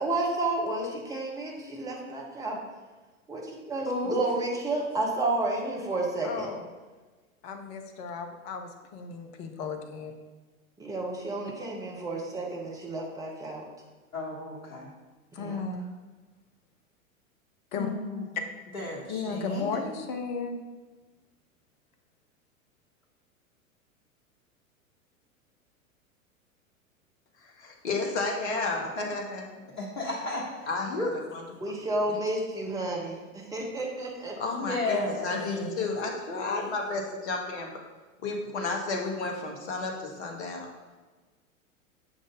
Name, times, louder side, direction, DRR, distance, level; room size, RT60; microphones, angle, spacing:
voice 1, 0.0-2.6 3.3-6.5 10.8-13.6 15.4-15.6 31.6-34.4, right 2 dB, 10° right, -1 dB, 0.7 m, -31 dB
voice 2, 3.9-4.2 14.1-14.9 17.7-18.2 18.7-19.9 29.8-31.1 34.5-35.6, left 2 dB, 75° left, -5 dB, 1.2 m, -33 dB
voice 3, 6.2-6.7 7.4-10.1 15.3-15.9 17.7-17.9 19.1-20.6 35.3-35.9, left 4 dB, 25° left, 5 dB, 0.6 m, -35 dB
voice 4, 27.4-29.6 30.7-31.4 34.4-37.7 38.2-40.7, left 3 dB, 55° left, 1 dB, 1.1 m, -32 dB
7.2 x 2.6 x 5.0 m, 1.3 s
figure-of-eight pair, 95°, 41 cm